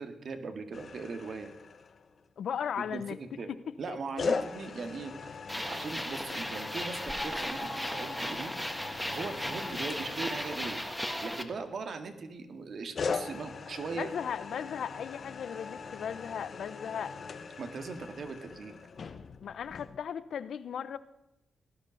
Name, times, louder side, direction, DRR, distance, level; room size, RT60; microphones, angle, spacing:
voice 1, 0.0-1.5 2.9-3.0 3.4-3.5 3.8-8.7 9.1-10.8 11.2-14.1 17.6-18.7, right 4 dB, 60° right, 2.0 m, -39 dB
sound 1, 0.7-2.3 4.2-12.0 12.9-20.0, left 5 dB, 55° left, 1.1 m, -40 dB
voice 2, 2.4-3.2 3.9-4.0 13.9-17.2 19.4-21.0, left 8 dB, 75° left, 0.8 m, -36 dB
sound 2, 5.5-11.4, equal, ahead, 1.6 m, -36 dB
18.0 x 11.0 x 6.5 m
cardioid pair, 70°, 0 cm